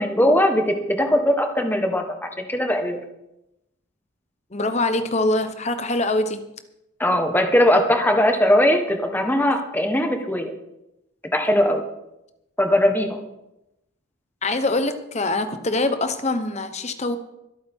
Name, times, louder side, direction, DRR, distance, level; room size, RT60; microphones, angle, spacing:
voice 1, 0.0-3.0 7.0-10.5 11.3-11.8 12.6-13.2, left 1 dB, 10° left, 4 dB, 1.2 m, -20 dB
voice 2, 4.5-6.5 14.4-17.2, left 2 dB, 30° left, 9 dB, 0.9 m, -24 dB
23.5 x 8.6 x 3.6 m, 0.89 s
head